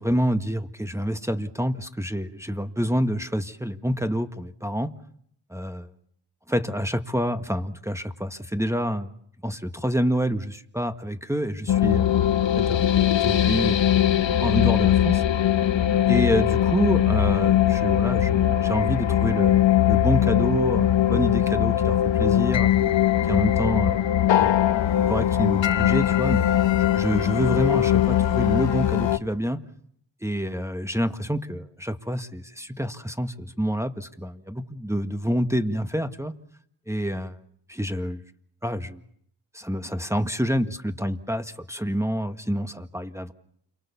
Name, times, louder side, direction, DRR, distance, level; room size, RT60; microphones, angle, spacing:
voice 1, 0.0-4.9 5.5-5.9 6.5-9.1 9.4-12.1 12.6-12.9 13.2-13.8 14.4-15.2 16.1-22.7 23.2-24.0 24.4-24.6 25.1-26.5 26.9-29.6 30.2-36.3 36.9-37.4 37.7-38.2 38.6-39.0 39.5-43.3, equal, 5° right, 7 dB, 1.7 m, -27 dB
sound 1, 11.7-29.2, left 11 dB, 85° left, 1.2 m, -21 dB
29.5 x 24.5 x 7.1 m, 0.67 s
cardioid pair, 75°, 44 cm